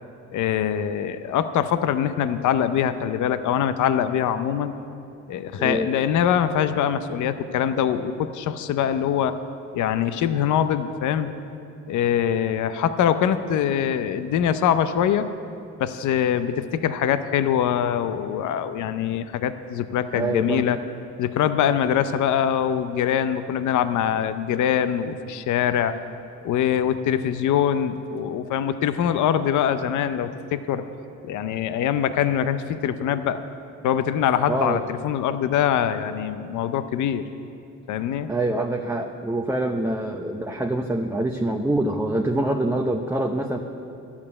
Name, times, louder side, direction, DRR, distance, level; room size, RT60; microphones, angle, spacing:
voice 1, 0.3-4.7 5.3-9.4 9.7-11.3 11.9-15.3 15.8-20.8 21.2-26.0 26.4-30.9 31.2-33.4 33.8-37.2 37.9-38.3, left 9 dB, 75° left, 11 dB, 0.6 m, -23 dB
voice 2, 5.6-5.9 20.1-20.7 34.5-34.8 38.3-43.6, right 1 dB, 10° right, 3 dB, 0.7 m, -25 dB
12.0 x 7.2 x 8.6 m, 2.7 s
cardioid pair, 90°, 30 cm